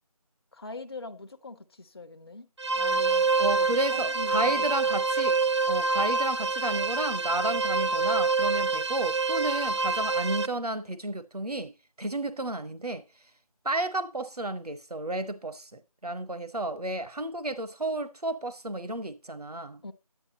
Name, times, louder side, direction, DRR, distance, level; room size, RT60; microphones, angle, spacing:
voice 1, 0.5-2.5 2.7-3.3 3.6-4.8 19.8-19.9, left 3 dB, 40° left, 0.8 m, -42 dB
sound 1, 2.6-10.5, right 4 dB, 50° right, 0.5 m, -26 dB
voice 2, 3.4-5.4 5.7-13.3 13.6-19.8, right 1 dB, 85° right, 1.0 m, -32 dB
9.9 x 9.8 x 3.7 m
figure-of-eight pair, 165°, 19 cm